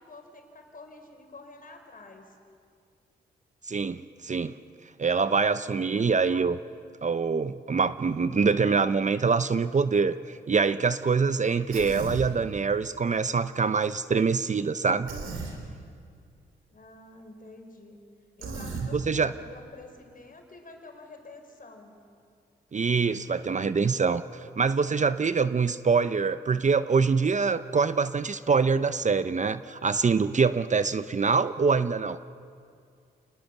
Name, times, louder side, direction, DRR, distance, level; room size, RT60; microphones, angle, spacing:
voice 1, 0.0-2.4 5.9-6.2 16.7-18.0 18.4-22.0, left 2 dB, 45° left, 4 dB, 5.0 m, -48 dB
voice 2, 3.7-4.5 5.0-6.6 7.0-15.1 18.9-19.3 22.7-32.2, right 5 dB, 40° right, 13 dB, 0.8 m, -25 dB
Human voice, 11.7-12.3 15.1-15.5 18.4-18.9, right 4 dB, 80° right, 3.5 m, -35 dB
28.0 x 20.0 x 7.2 m, 2.3 s
supercardioid pair, 55°, 20 cm